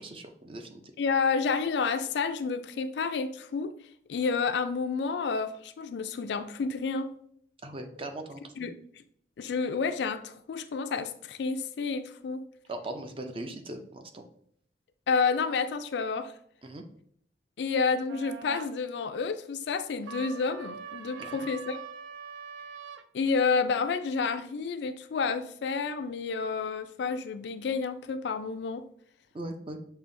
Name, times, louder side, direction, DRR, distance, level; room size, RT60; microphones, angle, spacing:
voice 1, 0.0-0.8 7.6-8.7 12.7-14.3 16.6-16.8 21.2-21.4 29.3-29.8, right 2 dB, 30° right, 6 dB, 0.5 m, -39 dB
voice 2, 1.0-3.7 4.1-7.1 8.6-8.7 9.4-12.4 15.1-16.3 17.6-21.8 23.1-28.8, left 5 dB, 70° left, 10 dB, 0.4 m, -30 dB
sound 1, 18.1-18.7 20.0-23.1, right 7 dB, 85° right, 0.4 m, -43 dB
6.7 x 2.7 x 2.6 m, 0.66 s
head